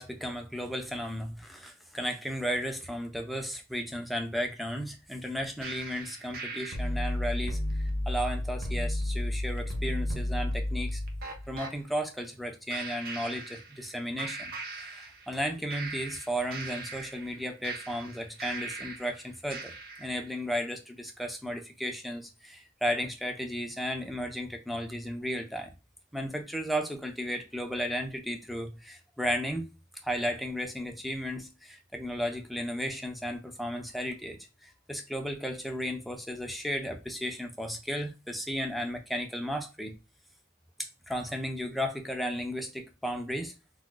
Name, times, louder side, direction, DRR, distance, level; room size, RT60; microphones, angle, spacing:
voice 1, 0.0-11.0 11.5-19.7 20.0-25.7 26.1-29.7 30.0-39.9 40.8-43.5, equal, ahead, 0.4 m, -34 dB
sound 1, 5.6-11.7 12.7-13.9 14.2-15.4 15.7-19.1 19.5-20.1, equal, 50° right, 0.6 m, -34 dB
2.3 x 2.1 x 3.7 m
head